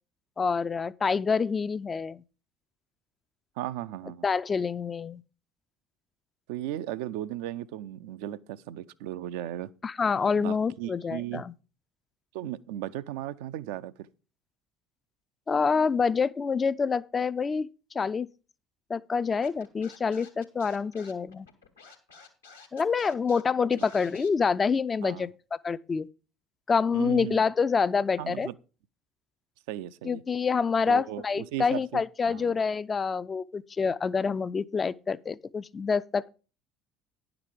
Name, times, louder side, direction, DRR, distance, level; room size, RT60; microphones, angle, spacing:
voice 1, 0.4-2.2 4.2-5.2 9.8-11.5 15.5-17.7 17.9-18.3 18.9-21.5 22.7-26.1 26.7-28.5 30.0-36.3, left 5 dB, 25° left, 0.4 m, -27 dB
voice 2, 3.6-4.3 6.5-9.7 10.4-11.4 12.3-13.9 25.0-25.3 26.9-27.4 28.2-28.6 29.7-30.2 30.9-32.0 32.3-32.6, right 13 dB, 65° right, 0.4 m, -36 dB
Scratching (performance technique), 19.4-24.3, left 5 dB, 85° left, 1.3 m, -51 dB
10.0 x 6.0 x 4.8 m
figure-of-eight pair, 60°, 0 cm